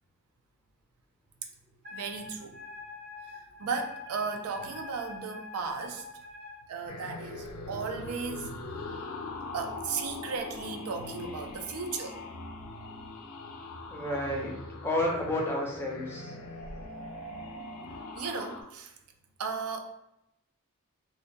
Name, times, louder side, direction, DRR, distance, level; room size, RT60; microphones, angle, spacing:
Wind instrument woodwind instrument, 1.8-6.6, left 4 dB, 40° right, 0.7 m, -45 dB
voice 1, 1.9-2.6 3.3-6.1 6.7-9.1 9.5-12.2 18.1-18.9 19.4-19.8, right 5 dB, 80° right, 5 dB, 0.3 m, -36 dB
sound 1, 6.9-18.6, left 2 dB, 75° left, 0.4 m, -41 dB
voice 2, 13.9-14.5 14.8-16.3, left 1 dB, 10° left, -1 dB, 0.4 m, -31 dB
2.2 x 2.1 x 2.5 m, 0.84 s
head